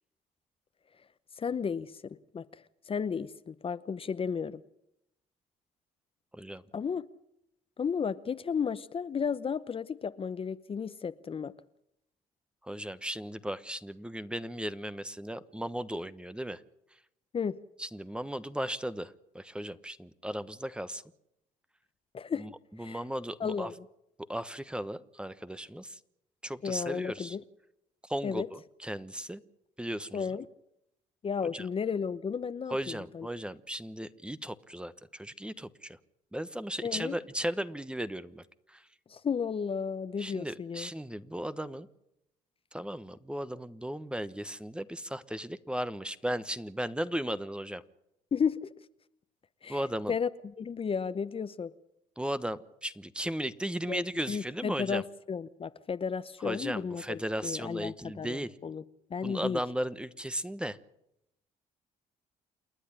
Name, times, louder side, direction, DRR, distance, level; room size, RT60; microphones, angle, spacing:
voice 1, 1.4-2.5 2.9-4.6 6.7-7.0 7.8-11.5 17.3-17.6 22.1-22.5 22.8-23.0 23.4-23.8 26.6-27.4 28.2-28.5 30.1-30.5 31.2-33.3 36.8-37.2 39.1-40.9 48.3-48.7 49.6-50.3 50.6-51.7 53.9-58.8 59.1-59.6, left 6 dB, 35° left, 0.9 m, -33 dB
voice 2, 12.6-16.6 17.8-21.0 22.3-22.5 22.8-23.7 24.3-26.0 26.4-27.4 28.1-29.4 29.8-30.3 31.5-31.6 32.7-36.0 36.3-38.4 38.7-38.8 40.2-41.9 42.7-47.8 49.7-50.1 52.2-55.0 56.4-58.5 59.2-60.8, right 1 dB, 5° right, 1.1 m, -36 dB
28.5 x 10.0 x 10.0 m
supercardioid pair, 80°, 15 cm